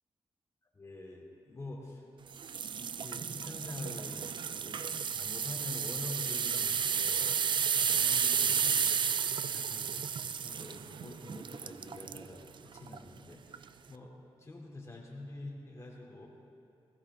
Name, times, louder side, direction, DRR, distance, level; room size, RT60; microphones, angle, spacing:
voice 1, 0.7-2.1 2.8-4.8 5.1-9.0 9.3-14.1 14.4-16.3, left 2 dB, 30° left, -2 dB, 2.8 m, -46 dB
sound 1, 2.4-12.3 12.8-13.0 13.5-13.6, right 7 dB, 55° right, 0.4 m, -32 dB
19.5 x 15.5 x 3.7 m, 2.7 s
wide cardioid pair, 120°, 10 cm